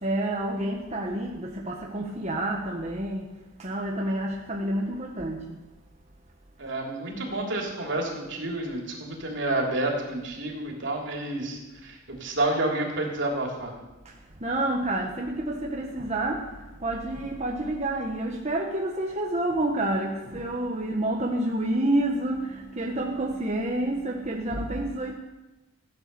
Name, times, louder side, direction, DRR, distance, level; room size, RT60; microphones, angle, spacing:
voice 1, 0.0-3.3 3.6-5.6 14.0-25.1, right 1 dB, 35° right, -1 dB, 1.4 m, -29 dB
voice 2, 6.6-13.7, right 2 dB, 65° right, 0 dB, 3.3 m, -29 dB
16.0 x 9.6 x 6.9 m, 1.0 s
head